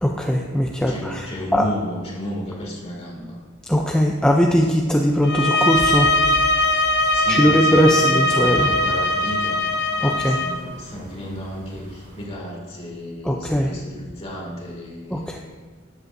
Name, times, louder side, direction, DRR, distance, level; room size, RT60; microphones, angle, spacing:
voice 1, 0.0-1.3 1.5-1.6 3.7-6.1 7.3-8.7 10.0-10.4 13.2-13.7 15.1-15.4, equal, 5° left, 0 dB, 0.5 m, -19 dB
voice 2, 0.9-3.4 7.1-9.6 10.0-15.3, equal, 30° left, -2 dB, 2.2 m, -33 dB
sound 1, 5.2-10.6, left 1 dB, 55° left, 0.7 m, -20 dB
sound 2, 5.7-12.2, equal, 60° right, 2.8 m, -40 dB
13.5 x 8.2 x 2.6 m, 1.4 s
head